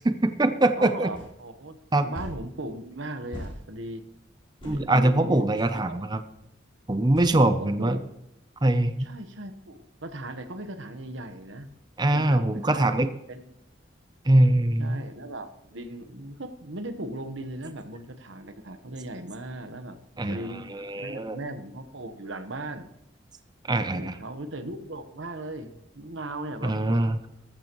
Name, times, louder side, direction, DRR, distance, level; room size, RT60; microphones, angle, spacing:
voice 1, 0.0-1.1 1.9-2.1 4.6-6.2 6.9-8.0 8.6-9.1 12.0-13.1 14.3-15.0 20.2-21.4 23.7-24.1 26.6-27.2, right 1 dB, 20° right, 10 dB, 0.6 m, -23 dB
voice 2, 0.7-4.0 4.6-6.1 7.4-8.1 9.0-11.7 12.1-12.9 13.3-13.6 14.8-20.0 20.3-20.6 20.9-22.9 23.9-27.0, right 1 dB, 75° right, 8 dB, 1.2 m, -38 dB
sound 1, 1.1-1.3 2.1-2.4 3.3-3.6 4.6-4.8 5.6-5.8 7.1-7.4, equal, 25° left, 4.3 m, -39 dB
14.0 x 13.5 x 3.1 m, 0.82 s
head